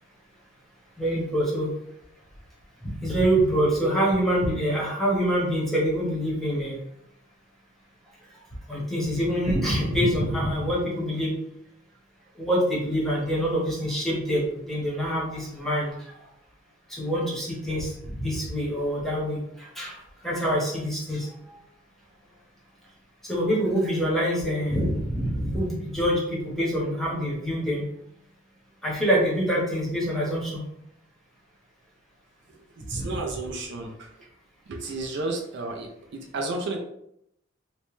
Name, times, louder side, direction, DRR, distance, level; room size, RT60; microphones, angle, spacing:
voice 1, 1.0-1.7 2.8-6.8 8.7-11.3 12.4-15.9 16.9-21.6 23.3-27.8 28.8-30.6 33.0-33.1, equal, ahead, -5 dB, 0.8 m, -25 dB
voice 2, 32.5-34.1 34.7-36.8, right 2 dB, 60° right, 1 dB, 0.4 m, -32 dB
2.9 x 2.1 x 3.0 m, 0.75 s
head